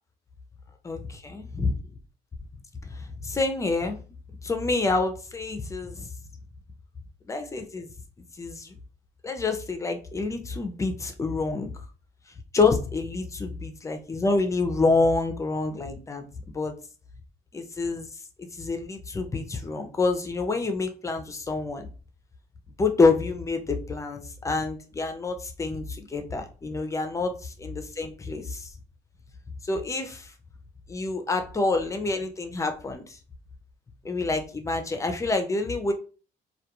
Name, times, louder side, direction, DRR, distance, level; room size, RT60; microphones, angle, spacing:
voice 1, 0.8-1.8 2.8-4.0 4.4-6.1 7.3-7.9 8.4-8.7 9.2-11.7 12.5-16.2 16.5-16.7 17.5-18.1 18.4-21.9 22.8-28.7 29.6-30.3 30.9-33.2 34.0-35.9, left 3 dB, 20° left, 6 dB, 0.4 m, -27 dB
2.3 x 2.2 x 2.8 m, 0.37 s
cardioid pair, 110°, 17 cm